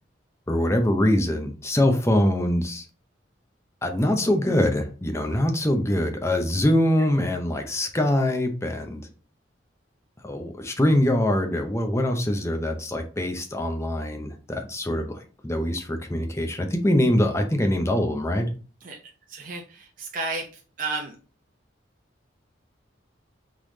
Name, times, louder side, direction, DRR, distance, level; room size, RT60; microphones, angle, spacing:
voice 1, 0.5-2.8 3.8-9.1 10.2-18.5, left 1 dB, 15° left, 0.6 m, -23 dB
voice 2, 19.3-20.5 20.8-21.1, right 3 dB, 45° right, 0.7 m, -32 dB
3.8 x 3.2 x 3.9 m
head